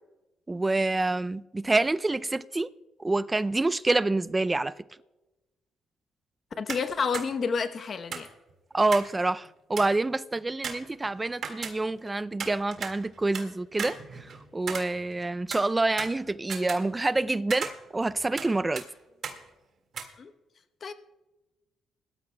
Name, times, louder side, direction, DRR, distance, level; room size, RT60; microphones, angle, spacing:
voice 1, 0.5-2.7 3.0-4.7 8.7-18.8, right 2 dB, 20° right, 0.4 m, -27 dB
voice 2, 6.6-8.3 20.2-20.3 20.8-20.9, left 5 dB, 45° left, 0.8 m, -29 dB
sound 1, 6.7-6.9 7.1-7.3 8.1-9.2 9.4-9.5 9.8-10.1 10.6-12.1 12.4-13.5 13.8-15.2 15.5-17.2 17.5-18.5 18.8-18.9 19.2-19.4 19.9-20.0, right 6 dB, 60° right, 1.8 m, -36 dB
21.5 x 13.0 x 2.2 m
cardioid pair, 90°, 0 cm